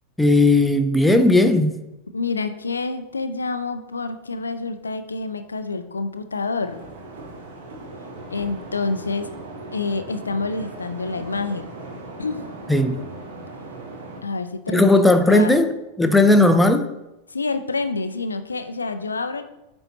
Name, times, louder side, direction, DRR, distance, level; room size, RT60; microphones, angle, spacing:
voice 1, 0.2-1.8 12.7-13.0 14.7-15.7 16.0-16.9, left 2 dB, 5° left, 0.5 m, -16 dB
voice 2, 2.1-6.8 8.3-9.3 9.7-11.7 12.2-12.4 14.2-14.8 15.3-15.6 17.3-19.4, left 3 dB, 75° left, 0.4 m, -27 dB
sound 1, 6.6-14.2, right 2 dB, 60° right, 1.2 m, -38 dB
8.8 x 4.2 x 2.9 m
figure-of-eight pair, 90°, 0 cm